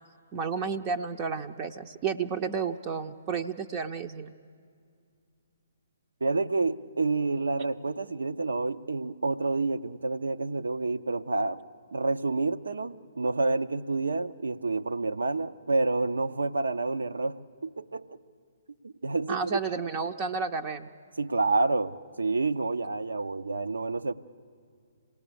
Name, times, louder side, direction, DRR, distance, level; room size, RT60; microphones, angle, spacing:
voice 1, 0.3-4.3 19.3-20.9, right 5 dB, 30° right, 6 dB, 0.6 m, -31 dB
voice 2, 6.2-11.6 11.9-17.4 17.6-18.2 18.8-19.6 21.2-24.1, right 3 dB, 80° right, 12 dB, 0.6 m, -28 dB
27.0 x 18.0 x 6.9 m, 2.2 s
figure-of-eight pair, 130°, 0 cm